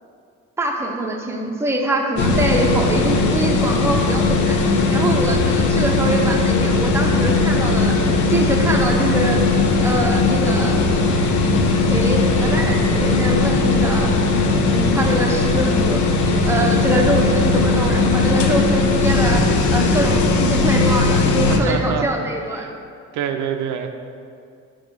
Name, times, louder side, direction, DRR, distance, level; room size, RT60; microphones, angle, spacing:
voice 1, 0.6-8.0 8.3-9.4 9.8-10.8 11.8-14.1 14.7-22.7, right 1 dB, 10° right, 0 dB, 0.6 m, -24 dB
sound 1, 2.2-21.6, left 3 dB, 75° left, 0.6 m, -18 dB
voice 2, 21.5-22.1 23.1-23.9, right 8 dB, 80° right, 6 dB, 0.5 m, -24 dB
5.2 x 3.5 x 5.1 m, 2.4 s
cardioid pair, 90°, 30 cm